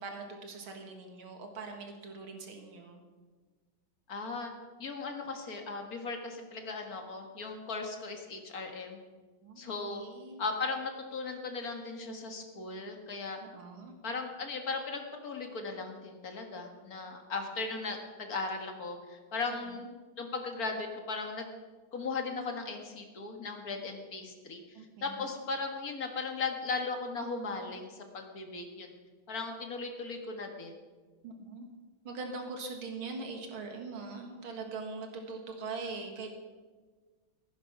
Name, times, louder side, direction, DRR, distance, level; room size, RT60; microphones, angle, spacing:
voice 1, 0.0-3.0 9.4-10.4 13.4-13.9 19.8-19.9 24.7-25.3 31.2-31.7 32.0-36.3, right 3 dB, 90° right, 4 dB, 2.5 m, -42 dB
voice 2, 4.1-4.5 4.8-9.0 9.6-10.0 10.4-13.4 14.0-19.9 20.2-21.5 21.9-28.9 29.3-30.7, left 4 dB, 45° left, 3 dB, 2.1 m, -37 dB
15.5 x 10.0 x 5.9 m, 1.4 s
omnidirectional pair, 2.2 m